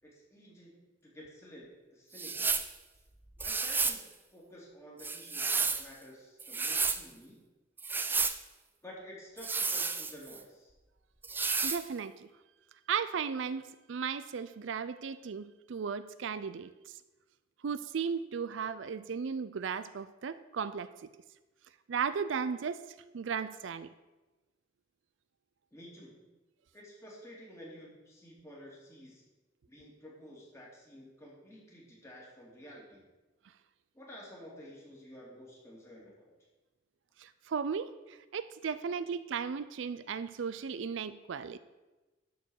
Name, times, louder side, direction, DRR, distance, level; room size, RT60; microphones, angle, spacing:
voice 1, 0.0-2.7 3.4-4.0 4.3-7.4 8.8-10.7 25.7-26.1 26.7-29.2 29.7-33.0 33.9-36.3, equal, 15° left, -4 dB, 2.6 m, -51 dB
sound 1, 2.1-2.7 3.4-4.0 5.0-5.9 6.4-7.0 7.8-8.4 9.4-10.4 11.2-11.8, right 4 dB, 10° right, 0.4 m, -31 dB
voice 2, 11.6-12.1 12.9-13.6 13.9-16.7 17.6-20.9 21.9-22.8 23.1-23.9 37.2-37.9 38.3-41.6, right 6 dB, 75° right, 14 dB, 0.4 m, -35 dB
11.5 x 4.7 x 6.4 m, 1.1 s
head